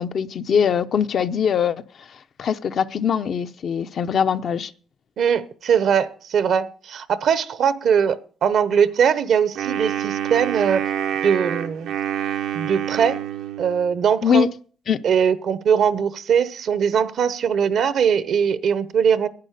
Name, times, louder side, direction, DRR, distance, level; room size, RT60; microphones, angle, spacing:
voice 1, 0.0-1.8 2.4-4.7 14.2-14.5 14.9-15.0, left 7 dB, 60° left, 0.7 m, -22 dB
voice 2, 5.2-10.8 11.2-11.9 12.5-13.2 13.6-14.5 15.0-19.3, right 7 dB, 65° right, 0.9 m, -20 dB
Wind instrument woodwind instrument, 9.5-14.0, right 10 dB, 90° right, 1.1 m, -27 dB
10.5 x 9.4 x 6.7 m
cardioid pair, 90°, 0 cm